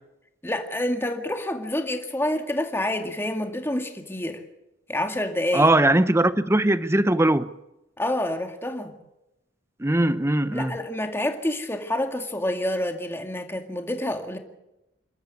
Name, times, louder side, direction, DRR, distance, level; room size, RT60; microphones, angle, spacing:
voice 1, 0.4-4.4 4.9-5.7 8.0-9.0 10.5-14.4, left 1 dB, 10° left, 2.2 m, -28 dB
voice 2, 5.5-7.5 9.8-10.7, right 1 dB, 15° right, 0.8 m, -20 dB
28.5 x 13.0 x 8.4 m
head